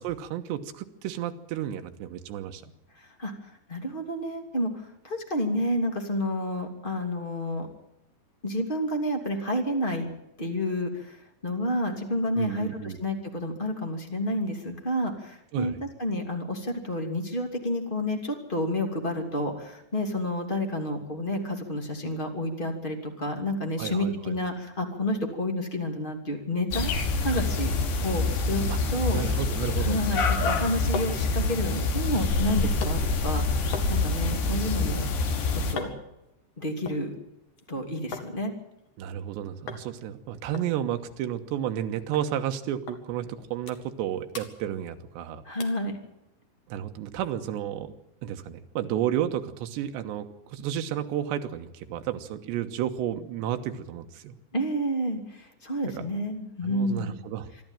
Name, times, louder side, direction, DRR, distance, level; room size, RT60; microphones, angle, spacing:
voice 1, 0.0-2.7 12.4-13.0 15.5-15.8 23.8-24.3 29.1-30.0 39.0-45.4 46.7-48.0 48.2-54.4 56.0-56.1 56.6-57.5, right 10 dB, 75° right, 6 dB, 3.3 m, -32 dB
voice 2, 3.0-7.7 8.4-10.1 10.4-26.9 27.2-27.7 28.0-28.6 28.9-29.2 29.8-35.1 35.7-35.9 36.6-37.1 37.7-38.5 45.4-46.0 54.5-57.1, left 1 dB, 15° left, 3 dB, 1.9 m, -30 dB
sound 1, 26.7-35.7, left 3 dB, 70° left, 4.4 m, -26 dB
sound 2, 30.7-38.3 38.6-39.3 39.7-39.9 40.1-40.2 40.5-41.8 42.1-42.3 42.9-43.0 43.4-44.0 44.3-45.2 45.6-45.9 46.4-46.5, left 4 dB, 50° left, 3.1 m, -41 dB
26.0 x 12.5 x 9.1 m, 0.87 s
omnidirectional pair, 5.3 m